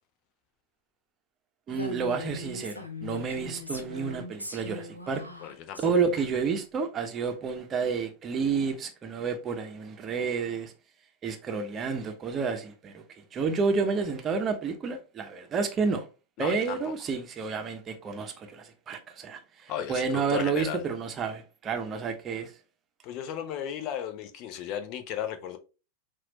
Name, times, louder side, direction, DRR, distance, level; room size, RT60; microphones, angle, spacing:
Female speech woman speaking, 1.7-5.9, left 2 dB, 85° left, 0.6 m, -40 dB
voice 1, 1.7-5.2 5.8-10.7 11.2-13.0 13.3-16.1 16.4-22.5, right 5 dB, 25° right, 0.8 m, -30 dB
voice 2, 5.4-5.9 16.4-16.9 19.7-20.8 23.0-25.6, left 9 dB, 40° left, 0.7 m, -35 dB
5.9 x 2.5 x 2.8 m
figure-of-eight pair, 90°, 0 cm